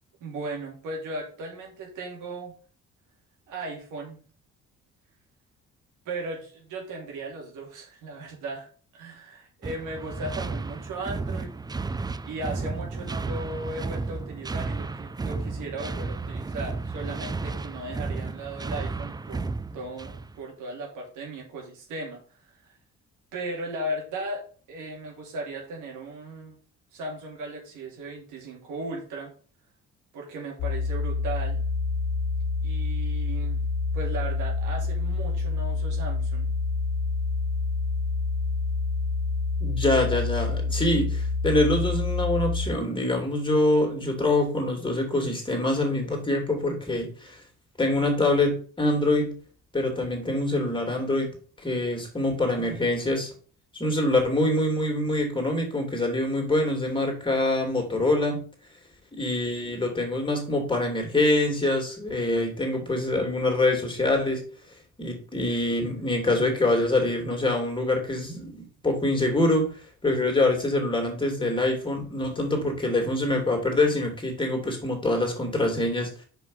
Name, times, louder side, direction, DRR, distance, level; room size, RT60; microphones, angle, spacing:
voice 1, 0.2-2.5 3.5-4.2 6.0-8.7 8.9-11.5 12.2-19.5 19.7-22.2 22.6-22.7 23.3-26.6 26.9-29.3 30.1-31.6 32.6-33.6 33.9-36.5, right 2 dB, 90° right, 0 dB, 2.8 m, -36 dB
sound 1, 9.6-20.4, right 3 dB, 15° right, 0.4 m, -33 dB
sound 2, 30.6-42.7, left 4 dB, 80° left, 1.0 m, -27 dB
voice 2, 39.6-47.4 47.8-49.4 49.7-51.3 51.6-53.3 53.7-58.4 59.1-64.4 65.0-68.5 68.8-69.8 70.0-76.2, left 2 dB, 15° left, 1 dB, 2.8 m, -25 dB
5.5 x 5.0 x 5.5 m, 0.42 s
cardioid pair, 90°, 30 cm